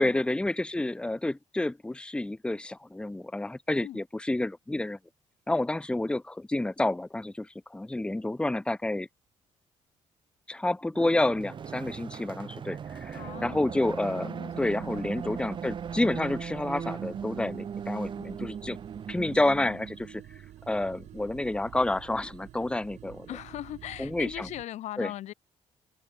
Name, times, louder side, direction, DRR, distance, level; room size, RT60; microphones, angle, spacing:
voice 1, 0.0-5.0 5.5-9.1 10.5-14.3 14.6-18.8 19.1-20.2 20.7-23.3 24.0-24.5 25.0-25.1, left 2 dB, 10° left, 1.5 m, -29 dB
sound 1, 10.9-20.1, right 7 dB, 45° right, 1.6 m, -38 dB
voice 2, 13.1-13.6 14.1-15.1 23.3-25.3, left 13 dB, 85° left, 2.8 m, -40 dB
sound 2, 14.5-24.6, right 13 dB, 80° right, 2.0 m, -48 dB
cardioid pair, 125°, 12 cm